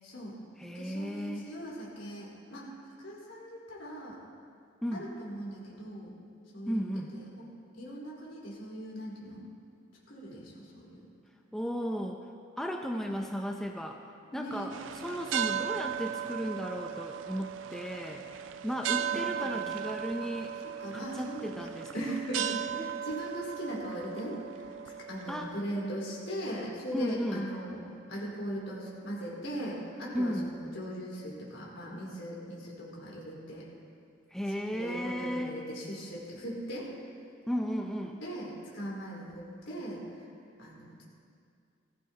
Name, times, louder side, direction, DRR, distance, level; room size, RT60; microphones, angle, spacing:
voice 1, 0.0-0.4 0.7-2.7 3.0-4.2 4.9-6.1 6.5-9.5 10.1-11.1 14.3-14.7 18.9-19.7 20.2-20.3 20.8-24.7 25.1-33.6 34.7-36.9 38.2-40.0 40.6-41.0, equal, 70° left, -6 dB, 4.3 m, -39 dB
voice 2, 0.6-1.5 4.8-5.0 6.7-7.1 11.5-12.2 12.6-14.0 14.3-18.2 18.6-20.5 20.9-22.2 22.7-22.9 25.3-25.5 26.9-27.5 30.1-30.5 34.3-35.6 37.5-38.2, equal, ahead, 1 dB, 0.5 m, -35 dB
sound 1, 14.7-25.6, right 9 dB, 65° right, 0.4 m, -36 dB
19.5 x 15.0 x 2.9 m, 2.4 s
head